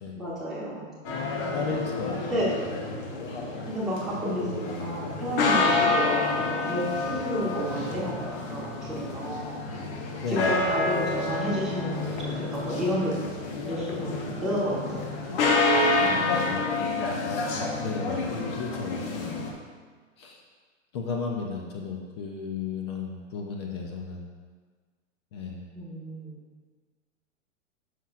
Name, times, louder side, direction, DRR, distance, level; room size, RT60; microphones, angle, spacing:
voice 1, 0.2-0.9 1.4-1.8 2.3-2.5 3.7-9.6 10.3-13.3 13.6-15.1 25.7-26.4, equal, ahead, -10 dB, 1.2 m, -31 dB
sound 1, 1.0-19.5, left 3 dB, 45° left, 1.1 m, -28 dB
voice 2, 1.5-2.4 10.2-10.5 16.0-16.7 17.2-17.5 17.8-19.5 20.2-20.4 20.9-24.3 25.3-25.6, left 5 dB, 25° left, 1 dB, 0.3 m, -34 dB
7.4 x 5.7 x 2.4 m, 1.5 s
hypercardioid pair, 140°, 39 cm